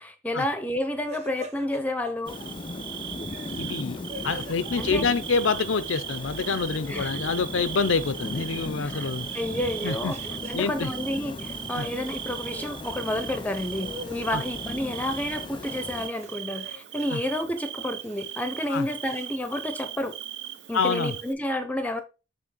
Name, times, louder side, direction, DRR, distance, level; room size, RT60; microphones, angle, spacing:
voice 1, 0.0-2.4 4.8-5.1 6.9-7.4 8.8-10.2 10.5-20.2 20.7-22.0, left 1 dB, 10° left, 0.7 m, -30 dB
sound 1, 1.0-2.5 3.2-5.7 5.9-7.2 7.5-10.7 11.1-11.6 11.9-13.0 13.3-14.4 15.0-15.8 16.1-17.2 17.8-19.2, equal, 35° right, 1.5 m, -45 dB
sound 2, 2.2-16.1, left 3 dB, 25° left, 0.3 m, -38 dB
Bird / Cricket, 2.3-21.3, right 11 dB, 60° right, 0.5 m, -38 dB
voice 2, 3.6-4.0 4.2-9.3 9.8-10.1 10.5-10.9 11.7-11.9 14.3-14.4 17.1-17.2 18.7-18.9 20.7-21.1, left 4 dB, 80° left, 0.6 m, -27 dB
6.3 x 3.2 x 5.9 m
head